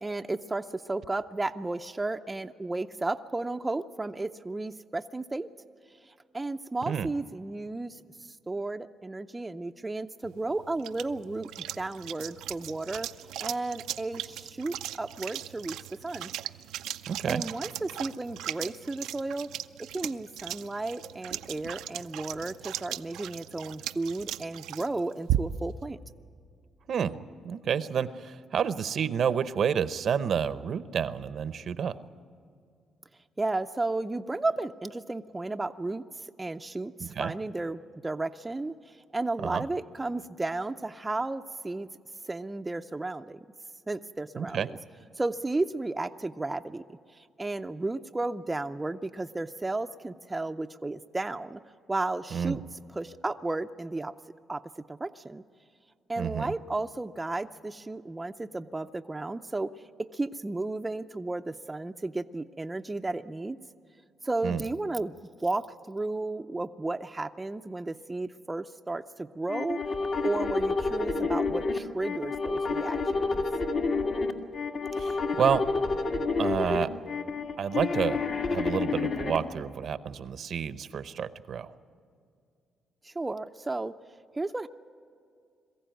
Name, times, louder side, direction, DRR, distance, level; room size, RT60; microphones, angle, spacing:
voice 1, 0.0-5.5 6.1-11.5 11.8-13.1 13.4-15.8 16.0-16.3 17.3-19.5 19.9-26.0 33.4-36.0 36.4-41.9 42.3-43.4 43.9-44.8 45.2-47.0 47.4-51.6 51.9-52.6 52.9-54.1 54.5-54.6 54.9-55.4 56.1-59.7 60.0-63.6 64.2-65.1 65.4-69.8 70.2-73.4 83.0-83.9 84.3-84.7, right 2 dB, 15° right, 7 dB, 0.5 m, -33 dB
sound 1, 10.2-25.8, right 12 dB, 90° right, 0.5 m, -38 dB
voice 2, 17.1-17.4 26.9-27.2 27.4-32.0 37.0-37.3 39.4-39.6 44.4-44.7 52.3-52.6 56.2-56.5 64.4-64.6 75.0-75.6 76.4-76.9 77.6-78.2 78.5-81.7, right 7 dB, 60° right, 13 dB, 0.7 m, -29 dB
sound 2, 69.5-79.4, left 4 dB, 60° left, 1.9 m, -29 dB
22.0 x 15.0 x 9.2 m, 2.3 s
cardioid pair, 90°, 0 cm